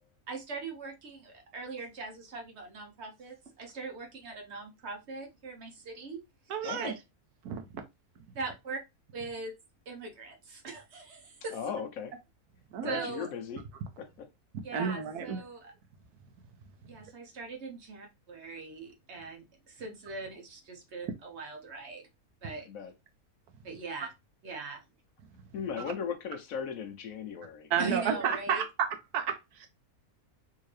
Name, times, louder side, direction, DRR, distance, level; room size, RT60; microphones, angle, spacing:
voice 1, 0.3-6.9 8.3-8.8 9.1-9.5 9.9-11.6 12.8-13.3 14.6-15.7 16.8-22.1 22.4-22.7 23.6-24.1 24.4-24.8 27.8-28.6, right 3 dB, 55° right, 0.9 m, -41 dB
voice 2, 6.5-6.9 7.4-7.6 12.7-13.1 14.7-15.4 27.7-28.9 29.1-29.7, right 7 dB, 90° right, 1.3 m, -31 dB
voice 3, 11.5-12.1 12.9-13.6 14.0-14.3 22.7-22.9 25.5-27.7, left 7 dB, 70° left, 1.1 m, -37 dB
3.6 x 2.7 x 3.1 m
omnidirectional pair, 1.6 m